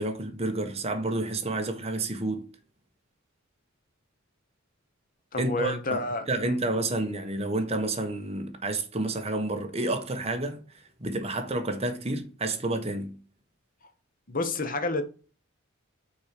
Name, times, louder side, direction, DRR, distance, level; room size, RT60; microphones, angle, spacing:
voice 1, 0.0-2.5 5.4-13.2, right 2 dB, 30° right, 1.3 m, -30 dB
voice 2, 5.3-6.6 14.3-15.0, left 3 dB, 45° left, 1.2 m, -30 dB
6.3 x 4.9 x 5.9 m
head